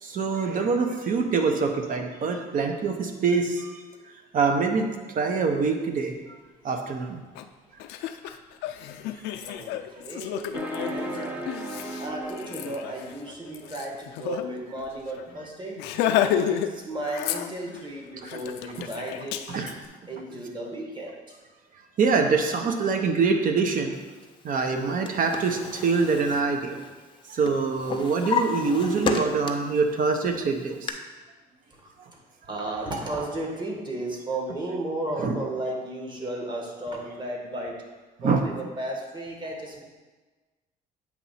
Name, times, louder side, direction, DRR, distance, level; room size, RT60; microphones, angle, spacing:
voice 1, 0.0-3.8 4.3-6.1 6.6-7.2 18.2-18.3 18.8-18.9 19.5-19.7 22.0-24.0 24.4-26.8 27.3-31.0 35.2-35.4 38.2-38.4, right 4 dB, 55° right, 5 dB, 0.9 m, -25 dB
Laughter, 7.3-7.4 7.8-14.4 14.8-14.9 15.2-15.4 15.8-16.7 17.0-17.8 18.3-19.7, left 10 dB, 90° left, 0.5 m, -31 dB
voice 2, 9.4-11.5 12.0-15.8 16.1-19.5 20.1-21.3 31.7-32.2 32.5-37.8 38.2-39.8, right 1 dB, 25° right, 0 dB, 1.5 m, -34 dB
sound 1, 10.5-13.5, right 1 dB, 10° right, 0.7 m, -36 dB
Drawer open or close, 24.7-27.2 27.5-29.8 30.2-30.9, left 6 dB, 30° left, 0.6 m, -32 dB
8.2 x 3.1 x 5.7 m, 1.3 s
cardioid pair, 110°, 17 cm